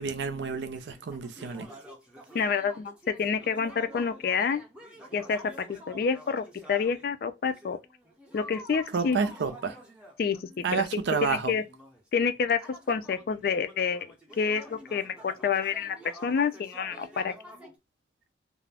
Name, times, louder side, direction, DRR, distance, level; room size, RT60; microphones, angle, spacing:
voice 1, 0.0-1.7 8.9-9.8 10.6-11.5, right 5 dB, 75° right, 0.4 m, -29 dB
sound 1, 0.9-7.1 7.4-17.7, equal, 5° right, 0.5 m, -49 dB
voice 2, 2.3-4.6 5.1-7.8 8.3-9.2 10.2-10.8 11.2-11.6 12.1-12.6 12.9-16.0 16.2-17.3, left 6 dB, 55° left, 0.3 m, -28 dB
2.3 x 2.0 x 3.3 m
head